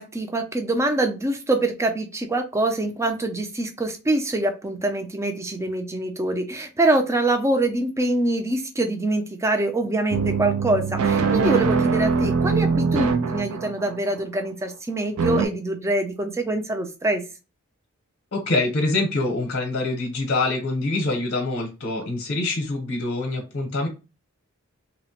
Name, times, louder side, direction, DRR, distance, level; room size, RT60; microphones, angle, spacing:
voice 1, 0.0-17.2, right 2 dB, 15° right, 5 dB, 0.4 m, -24 dB
sound 1, 10.1-14.1 15.2-15.5, right 5 dB, 75° right, 0.4 m, -22 dB
voice 2, 18.3-23.9, left 2 dB, 55° left, 2 dB, 0.7 m, -25 dB
2.9 x 2.1 x 2.8 m, 0.30 s
head